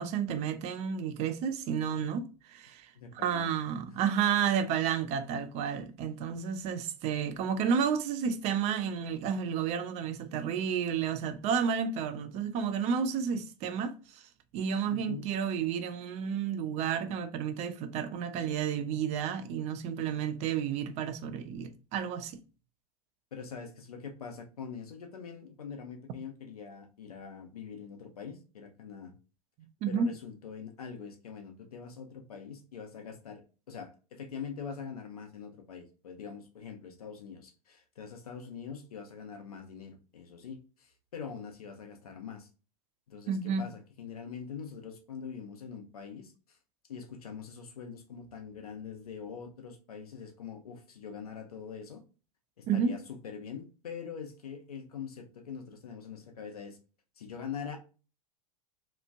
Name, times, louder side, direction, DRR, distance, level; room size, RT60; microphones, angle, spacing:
voice 1, 0.0-14.2 14.5-22.4 29.8-30.1 43.3-43.7 52.7-53.0, right 7 dB, 35° right, 0.5 m, -31 dB
voice 2, 2.9-3.5 14.9-15.3 23.3-29.1 29.9-42.5 43.1-46.3 46.9-52.0 52.6-56.8 57.2-57.8, left 6 dB, 70° left, 0.8 m, -43 dB
3.0 x 2.4 x 2.4 m
figure-of-eight pair, 95°, 19 cm